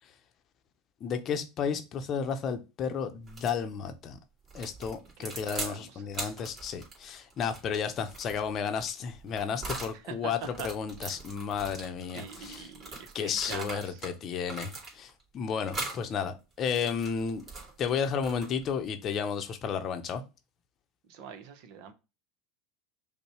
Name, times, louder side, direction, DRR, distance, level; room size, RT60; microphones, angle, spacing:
voice 1, 1.0-4.2 4.5-12.7 13.1-17.4 17.8-20.2, left 6 dB, 40° left, 0.7 m, -32 dB
sound 1, 3.3-3.6 4.5-5.8 6.1-10.0 10.4-14.1 14.4-15.2 15.7-16.0 16.6-18.7, right 3 dB, 30° right, 2.4 m, -41 dB
voice 2, 5.2-6.0 9.9-10.7 11.1-11.2 12.1-14.0 21.1-21.9, right 7 dB, 60° right, 0.9 m, -43 dB
5.3 x 2.2 x 4.3 m
hypercardioid pair, 80°, 0 cm